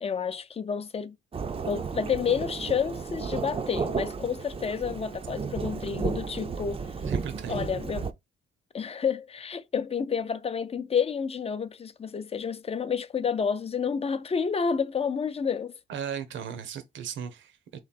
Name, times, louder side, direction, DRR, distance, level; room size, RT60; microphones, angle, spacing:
voice 1, 0.0-1.1 1.7-6.8 7.5-8.1 8.7-15.8, left 6 dB, 30° left, 0.5 m, -29 dB
Thunderstorm / Rain, 1.3-8.1, right 5 dB, 30° right, 0.5 m, -33 dB
voice 2, 7.1-7.7 15.9-17.8, right 8 dB, 70° right, 0.9 m, -36 dB
3.2 x 3.1 x 4.1 m
cardioid pair, 90°, 20 cm